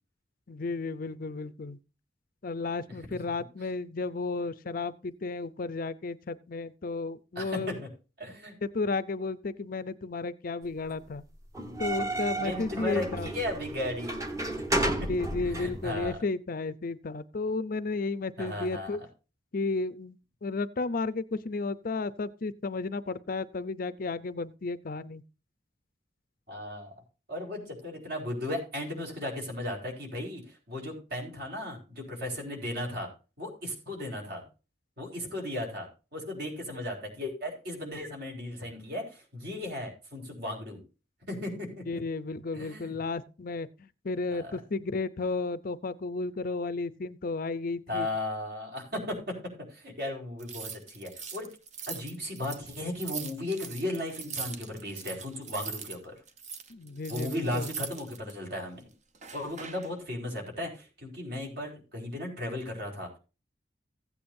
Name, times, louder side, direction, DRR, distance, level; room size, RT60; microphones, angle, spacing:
voice 1, 0.5-1.8 2.4-7.7 8.6-11.2 11.8-13.3 14.8-19.0 19.5-20.2 20.4-25.2 41.9-48.1 56.7-57.7, left 3 dB, 50° left, 0.5 m, -33 dB
voice 2, 7.3-7.7 8.2-8.6 12.4-14.3 14.7-14.9 15.4-16.2 18.4-19.0 26.5-26.9 27.3-33.1 33.4-34.4 35.0-40.8 41.3-42.0 42.5-43.0 44.3-44.5 47.9-49.4 49.7-51.5 51.9-56.1 57.1-58.9 59.3-63.1, left 1 dB, 55° right, 4.5 m, -36 dB
sound 1, 11.5-16.1, right 1 dB, 15° right, 1.1 m, -33 dB
sound 2, 50.4-56.0 56.3-58.3 59.1-59.9, right 6 dB, 40° right, 0.9 m, -41 dB
15.5 x 8.6 x 2.6 m
head